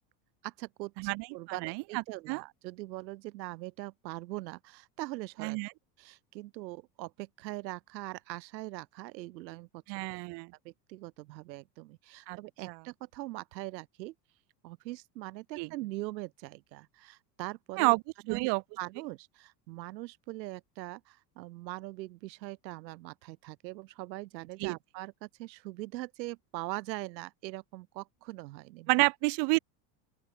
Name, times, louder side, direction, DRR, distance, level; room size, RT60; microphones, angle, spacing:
voice 1, 0.4-5.6 6.0-10.1 10.6-14.1 14.6-17.9 18.3-18.5 18.8-29.1, right 19 dB, 90° right, 6.2 m, -42 dB
voice 2, 1.0-2.4 5.4-5.7 9.9-10.5 12.3-12.4 12.7-12.8 15.6-15.7 17.8-18.0 18.3-18.6 24.6-24.7 28.9-29.6, right 29 dB, 55° right, 2.7 m, -29 dB
open air
supercardioid pair, 155°, 50 cm